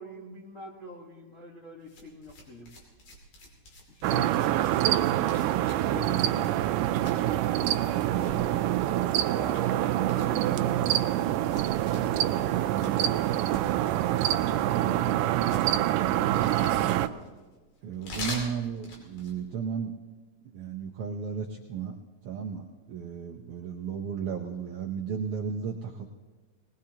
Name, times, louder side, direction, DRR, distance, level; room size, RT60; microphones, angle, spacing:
voice 1, 0.0-2.7 3.9-4.7 5.8-8.7 9.3-13.5 14.3-15.6, left 2 dB, 45° left, -4 dB, 0.9 m, -45 dB
sound 1, 1.8-19.4, left 2 dB, 80° left, 4.3 m, -45 dB
sound 2, 4.0-17.1, right 13 dB, 90° right, 2.2 m, -26 dB
voice 2, 6.0-6.3 17.8-20.0 20.5-21.9 22.2-26.1, right 6 dB, 70° right, 1 dB, 1.4 m, -34 dB
20.5 x 19.5 x 2.9 m, 1.3 s
omnidirectional pair, 3.7 m